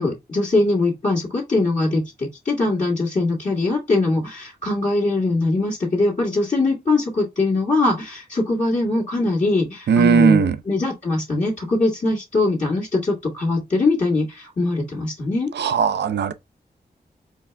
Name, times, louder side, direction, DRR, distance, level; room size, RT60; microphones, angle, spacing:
voice 1, 0.0-15.5, left 2 dB, 45° left, 1.6 m, -22 dB
voice 2, 9.9-10.6 15.5-16.3, right 6 dB, 80° right, 0.4 m, -17 dB
4.4 x 2.4 x 3.2 m
cardioid pair, 50°, 18 cm